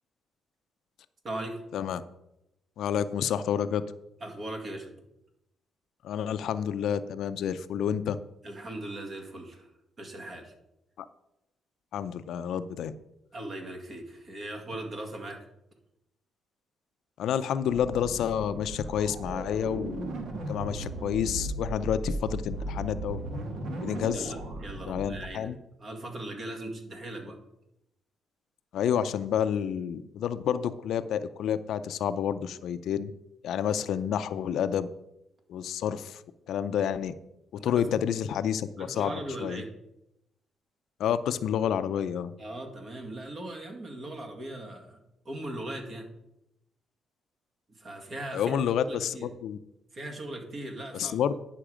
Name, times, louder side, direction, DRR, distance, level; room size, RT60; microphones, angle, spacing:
voice 1, 1.2-1.7 4.2-4.9 8.4-9.7 10.0-10.5 13.3-15.5 23.8-25.5 25.8-27.4 37.6-38.0 38.8-39.7 42.4-45.0 45.2-46.1 47.7-48.6 48.9-49.3 49.9-51.2, right 1 dB, 45° right, 3 dB, 2.1 m, -39 dB
voice 2, 2.8-3.8 6.0-8.2 11.9-12.9 17.2-20.2 20.5-23.2 23.8-24.3 24.9-25.6 28.7-33.1 33.4-34.9 35.5-36.2 36.5-37.1 37.6-39.1 39.4-39.6 41.0-42.3 48.3-49.6 50.9-51.3, left 9 dB, 75° left, 12 dB, 0.5 m, -29 dB
sound 1, 17.6-25.3, right 2 dB, 70° right, 1.5 m, -36 dB
10.0 x 5.9 x 4.9 m, 0.86 s
cardioid pair, 90°, 0 cm